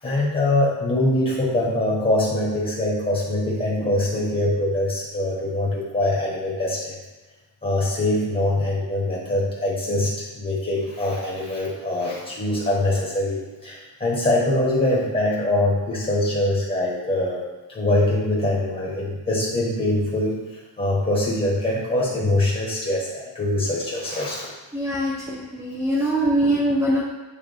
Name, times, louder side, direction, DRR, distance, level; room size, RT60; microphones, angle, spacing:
voice 1, 0.0-6.9 7.6-17.4 17.7-24.5 26.0-26.1, left 1 dB, 20° left, -5 dB, 1.3 m, -23 dB
voice 2, 24.7-27.0, right 1 dB, 5° right, -6 dB, 0.8 m, -22 dB
8.6 x 3.3 x 3.4 m, 1.2 s
wide cardioid pair, 125°, 45 cm